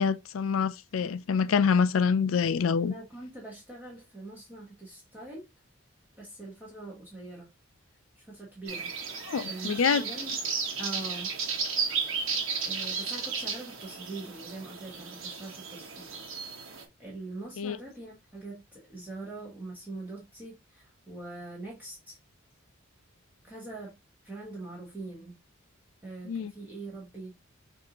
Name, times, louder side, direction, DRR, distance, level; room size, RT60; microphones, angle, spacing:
voice 1, 0.0-2.9 9.3-10.0 17.6-17.8 26.3-26.5, left 6 dB, 75° left, 0.4 m, -26 dB
voice 2, 2.8-5.4 6.2-7.5 8.2-8.9 9.5-10.4 10.7-11.3 12.6-16.2 17.0-22.2 23.4-24.0 24.2-25.3 26.0-27.3, right 2 dB, 10° right, 1.1 m, -43 dB
sound 1, 8.7-16.8, right 5 dB, 70° right, 1.1 m, -34 dB
5.8 x 2.6 x 2.9 m
head